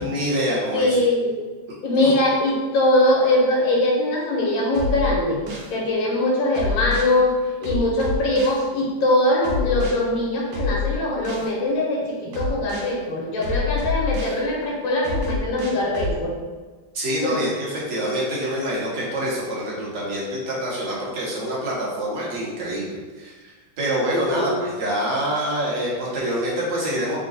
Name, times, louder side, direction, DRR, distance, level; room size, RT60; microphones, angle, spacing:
voice 1, 0.0-1.0 2.0-2.1 16.9-23.3 23.8-27.2, equal, 45° right, -5 dB, 1.1 m, -26 dB
voice 2, 0.7-1.3 1.8-5.4 5.7-7.4 7.6-16.3 17.2-17.3 24.3-24.7, left 1 dB, 80° left, -3 dB, 1.7 m, -21 dB
sound 1, 4.7-5.7 6.5-7.1 7.6-8.6 9.4-9.9 10.5-11.5 12.3-12.9 13.4-14.4 15.0-16.2, left 4 dB, 75° right, 1.5 m, -27 dB
3.9 x 2.3 x 3.9 m, 1.3 s
omnidirectional pair, 2.1 m